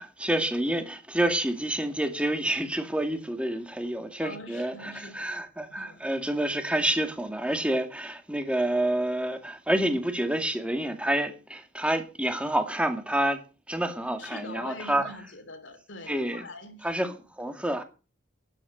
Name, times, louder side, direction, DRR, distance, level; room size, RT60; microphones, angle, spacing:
voice 1, 0.0-13.4 13.7-15.1 16.1-16.5 16.8-17.8, right 1 dB, 5° right, 2.2 m, -28 dB
voice 2, 4.2-5.4 5.8-6.0 14.2-16.9, left 1 dB, 65° left, 3.1 m, -43 dB
12.5 x 11.0 x 6.7 m
head